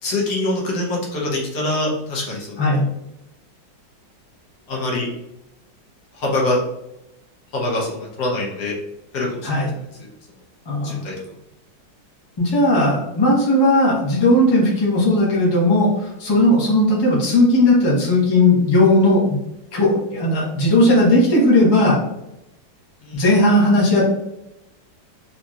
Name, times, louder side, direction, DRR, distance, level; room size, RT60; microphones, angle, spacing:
voice 1, 0.0-2.7 4.7-5.1 6.1-6.6 7.5-8.7 9.1-9.6 10.0-10.1 10.8-11.1 23.0-23.2, left 2 dB, 70° left, -2 dB, 1.3 m, -24 dB
voice 2, 10.7-11.0 12.4-19.4 19.7-22.0 23.1-24.0, left 1 dB, 20° left, -5 dB, 0.7 m, -16 dB
3.8 x 2.7 x 2.3 m, 0.88 s
omnidirectional pair, 1.9 m